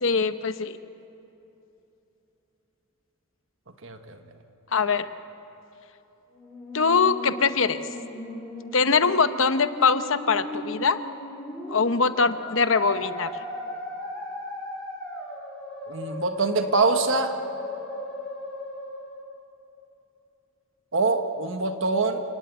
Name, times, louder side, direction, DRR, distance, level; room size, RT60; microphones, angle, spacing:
voice 1, 0.0-0.8 4.7-5.1 6.7-7.8 8.7-11.0 11.7-13.3, left 5 dB, 65° left, 11 dB, 1.0 m, -22 dB
voice 2, 3.8-4.2 15.9-17.3 20.9-22.2, right 3 dB, 60° right, 6 dB, 1.5 m, -24 dB
Musical instrument, 6.3-19.3, left 1 dB, 5° left, 5.4 m, -37 dB
29.0 x 17.5 x 9.5 m, 3.0 s
head